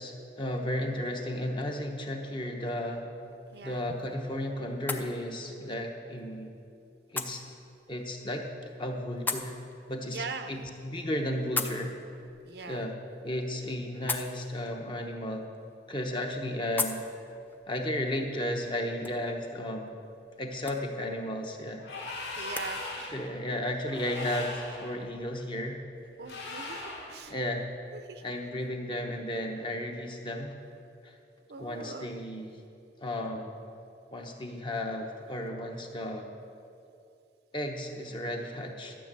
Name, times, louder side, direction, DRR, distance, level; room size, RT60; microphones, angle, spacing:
voice 1, 0.0-3.1 3.6-6.5 7.1-7.4 7.9-8.5 8.8-9.5 9.9-12.0 12.7-13.0 13.2-15.5 15.9-17.0 17.7-19.9 20.4-21.8 23.1-25.8 27.3-27.7 28.2-30.6 31.0-31.2 31.6-32.6 33.0-33.5 34.1-36.3 37.5-39.0, left 1 dB, 25° left, 2 dB, 0.9 m, -34 dB
sound 1, 3.2-22.7, left 3 dB, 10° left, 0.4 m, -42 dB
voice 2, 3.5-3.9 10.1-10.6 12.4-12.9 22.4-23.1 26.2-27.4 27.9-28.2 28.5-28.6 31.5-32.1, right 4 dB, 70° right, 8 dB, 0.6 m, -42 dB
sound 2, 21.8-23.3 23.9-24.9 26.2-27.2, left 2 dB, 90° left, 1.9 m, -39 dB
12.5 x 6.0 x 7.5 m, 2.5 s
head